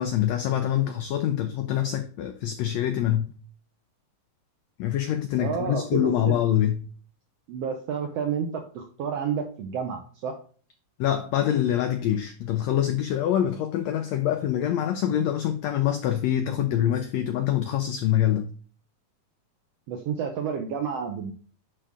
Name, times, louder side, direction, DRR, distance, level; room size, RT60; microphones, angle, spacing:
voice 1, 0.0-3.3 4.8-6.9 11.0-18.5, left 11 dB, 85° left, 1.5 m, -25 dB
voice 2, 5.4-6.4 7.5-10.3 19.9-21.3, right 7 dB, 80° right, 1.4 m, -30 dB
9.9 x 3.6 x 3.5 m
omnidirectional pair, 3.7 m